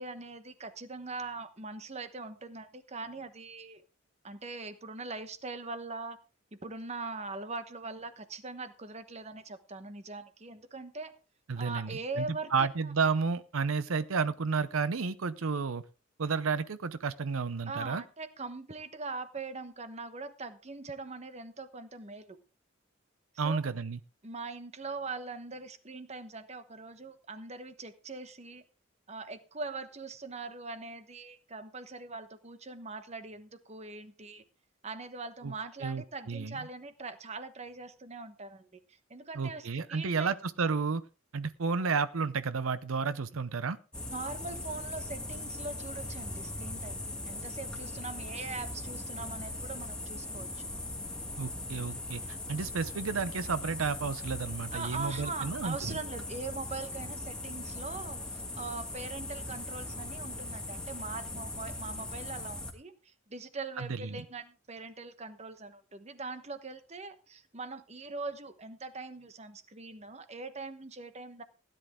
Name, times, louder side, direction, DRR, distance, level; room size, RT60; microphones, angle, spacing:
voice 1, 0.0-3.8 4.2-6.2 6.5-11.2 11.6-12.9 17.7-22.4 23.4-23.6 24.2-28.6 29.1-34.4 34.8-40.3 44.1-50.6 54.7-71.4, right 3 dB, 30° right, 10 dB, 1.1 m, -42 dB
voice 2, 11.5-15.8 16.2-18.0 23.4-24.0 35.4-35.5 35.8-36.6 39.4-41.0 41.3-43.8 51.4-56.0 63.8-64.2, right 5 dB, 85° right, 14 dB, 0.7 m, -32 dB
sound 1, 43.9-62.7, left 2 dB, 5° left, 1.7 m, -40 dB
16.0 x 10.5 x 3.6 m, 0.33 s
head